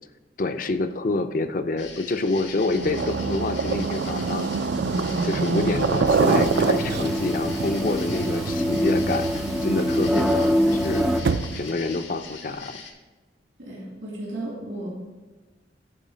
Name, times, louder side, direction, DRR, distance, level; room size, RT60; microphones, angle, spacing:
voice 1, 0.4-4.4 5.1-11.1 11.6-12.8, left 3 dB, 50° left, 9 dB, 0.5 m, -27 dB
sound 1, 1.8-12.9, left 5 dB, 85° left, 1.4 m, -42 dB
sound 2, 2.6-11.8, right 4 dB, 70° right, 0.4 m, -26 dB
sound 3, 6.1-11.2, equal, 5° right, 0.4 m, -24 dB
voice 2, 13.6-14.9, right 1 dB, 85° right, -5 dB, 3.1 m, -34 dB
11.0 x 4.9 x 5.0 m, 1.3 s
head